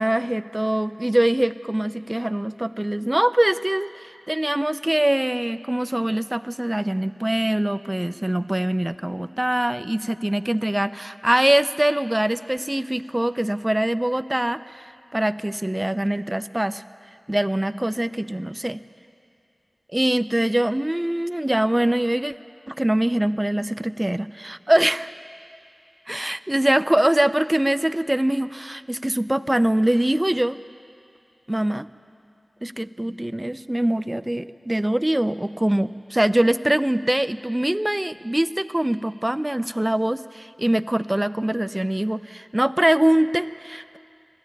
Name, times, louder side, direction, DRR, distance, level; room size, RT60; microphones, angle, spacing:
voice 1, 0.0-16.8 17.3-18.8 19.9-22.3 22.7-25.1 26.1-30.6 31.5-31.9 32.6-44.0, right 1 dB, 20° right, 13 dB, 0.5 m, -23 dB
21.5 x 13.5 x 10.0 m, 2.5 s
wide cardioid pair, 55°, 0 cm